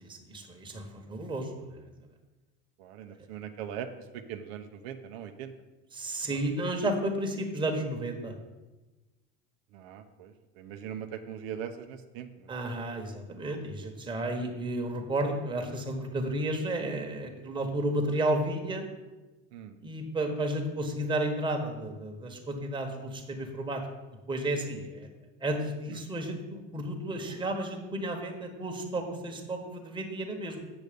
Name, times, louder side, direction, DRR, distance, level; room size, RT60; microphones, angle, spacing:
voice 1, 0.0-1.8 5.9-8.3 12.5-18.8 19.8-23.8 24.3-25.1 25.4-30.6, right 1 dB, 15° right, 2 dB, 1.3 m, -32 dB
voice 2, 2.8-5.5 9.7-12.5 19.5-19.8 25.9-26.0, right 8 dB, 85° right, 7 dB, 0.8 m, -41 dB
8.2 x 6.6 x 5.2 m, 1.1 s
supercardioid pair, 130°, 31 cm